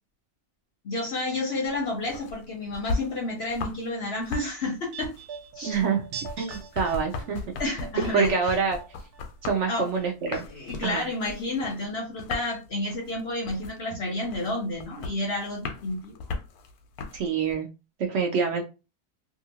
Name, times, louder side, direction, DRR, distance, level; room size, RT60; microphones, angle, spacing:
voice 1, 0.8-5.1 5.5-5.8 7.6-8.5 9.7-9.9 10.5-16.2, left 2 dB, 60° left, 1 dB, 0.7 m, -30 dB
sound 1, 1.6-3.9 4.1-17.5, left 3 dB, 85° left, 1.1 m, -37 dB
sound 2, 4.2-9.2 9.5-10.4 10.7-10.8, right 6 dB, 90° right, 1.2 m, -43 dB
voice 2, 5.6-6.0 6.4-7.4 8.1-8.8 9.4-10.4 10.8-11.0 17.1-17.7 18.0-18.6, right 5 dB, 65° right, 3 dB, 0.8 m, -26 dB
2.7 x 2.5 x 2.8 m, 0.29 s
omnidirectional pair, 1.6 m